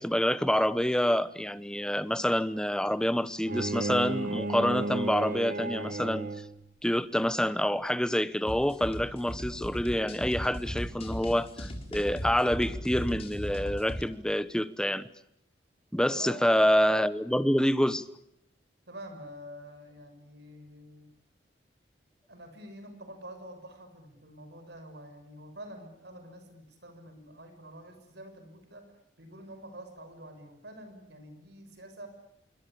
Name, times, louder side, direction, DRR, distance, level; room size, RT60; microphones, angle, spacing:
voice 1, 0.0-6.3 6.8-15.1 15.9-18.0, equal, 5° left, 1.0 m, -27 dB
Bowed string instrument, 3.4-6.7, right 2 dB, 50° right, 1.3 m, -33 dB
sound 1, 8.5-14.0, equal, 35° left, 3.9 m, -37 dB
voice 2, 16.1-16.4 18.9-21.1 22.3-28.9 29.2-32.1, right 1 dB, 65° right, 6.2 m, -47 dB
26.5 x 24.0 x 8.7 m
head